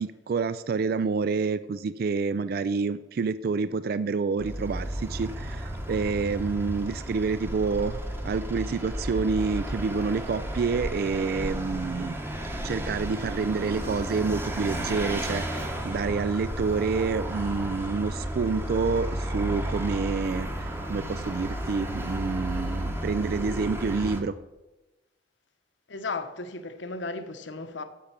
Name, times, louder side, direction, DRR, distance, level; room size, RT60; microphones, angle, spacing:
voice 1, 0.0-12.2 12.6-24.3, right 4 dB, 55° right, 0.3 m, -28 dB
Vehicle, 4.4-24.2, right 1 dB, 10° right, 1.0 m, -33 dB
voice 2, 25.9-27.8, left 3 dB, 75° left, 0.9 m, -35 dB
8.5 x 6.7 x 7.2 m
head